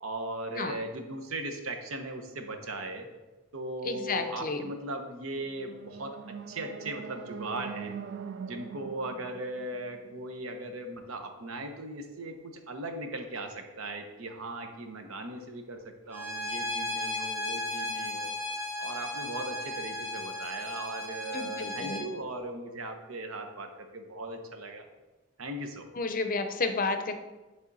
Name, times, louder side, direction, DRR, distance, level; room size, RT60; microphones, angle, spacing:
voice 1, 0.0-3.1 3.5-8.0 8.4-18.4 18.8-24.9 25.4-25.9, right 2 dB, 70° right, 5 dB, 0.9 m, -38 dB
voice 2, 3.8-4.6 21.3-22.0 25.9-27.1, left 3 dB, 40° left, 7 dB, 0.6 m, -31 dB
sound 1, 5.5-10.6, right 6 dB, 55° right, 0.4 m, -42 dB
Bowed string instrument, 16.1-22.0, left 2 dB, 10° right, 1.2 m, -35 dB
10.5 x 3.5 x 4.0 m, 1.2 s
head